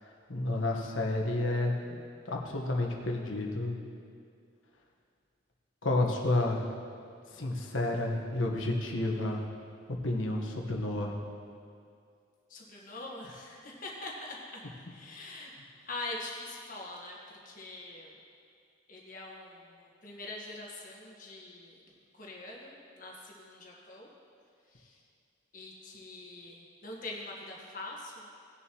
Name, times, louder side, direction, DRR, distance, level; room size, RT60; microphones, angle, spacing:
voice 1, 0.3-1.8 2.2-3.8 5.8-6.7 7.3-9.4 10.0-11.2, left 2 dB, 80° left, 0 dB, 1.4 m, -30 dB
voice 2, 12.5-14.6 14.9-15.5 15.9-18.1 18.9-21.8 22.1-24.1 24.7-25.0 25.5-28.3, left 2 dB, 45° left, -3 dB, 1.7 m, -44 dB
18.5 x 7.1 x 3.1 m, 2.3 s
head